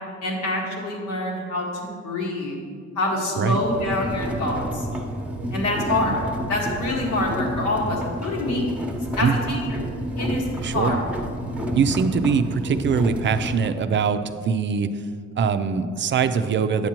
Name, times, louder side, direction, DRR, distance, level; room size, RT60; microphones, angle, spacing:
voice 1, 0.2-2.6 3.0-4.9 5.5-6.2 6.5-8.7 9.2-9.8 10.2-11.0 11.7-11.9, left 2 dB, 80° left, -3 dB, 1.8 m, -26 dB
sound 1, 3.6-13.7, equal, 5° right, 0.9 m, -30 dB
voice 2, 10.6-11.0 11.7-14.9 15.4-16.9, right 6 dB, 40° right, 11 dB, 0.4 m, -22 dB
9.6 x 7.3 x 3.0 m, 2.2 s
cardioid pair, 90°, 30 cm